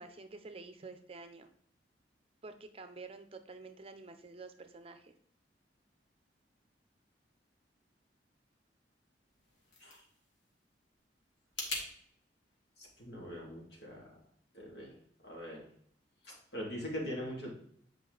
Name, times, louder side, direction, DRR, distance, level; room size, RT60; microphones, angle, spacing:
voice 1, 0.0-1.5 2.4-5.1, right 3 dB, 35° right, 8 dB, 0.6 m, -49 dB
sound 1, 9.2-11.9, left 2 dB, 85° left, 2.1 m, -44 dB
voice 2, 12.8-14.1 14.5-14.9 15.2-15.6 16.2-17.5, equal, 65° left, -2 dB, 2.6 m, -42 dB
8.2 x 4.9 x 3.9 m, 0.63 s
head